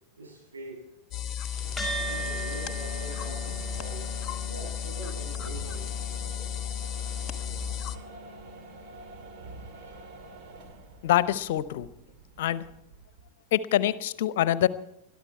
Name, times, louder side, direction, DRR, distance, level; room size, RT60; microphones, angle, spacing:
voice 1, 0.2-0.9 1.9-5.8 9.6-10.0, right 2 dB, 75° right, -1 dB, 7.6 m, -44 dB
sound 1, 1.1-8.0, left 9 dB, 30° left, 1.1 m, -34 dB
sound 2, 1.4-13.3, right 3 dB, 45° right, 2.3 m, -46 dB
sound 3, 1.8-10.4, right 2 dB, ahead, 6.0 m, -41 dB
voice 2, 11.0-11.9 12.4-12.7 13.5-14.7, left 12 dB, 55° left, 16 dB, 0.8 m, -25 dB
22.0 x 13.0 x 4.5 m, 0.87 s
figure-of-eight pair, 90°, 0 cm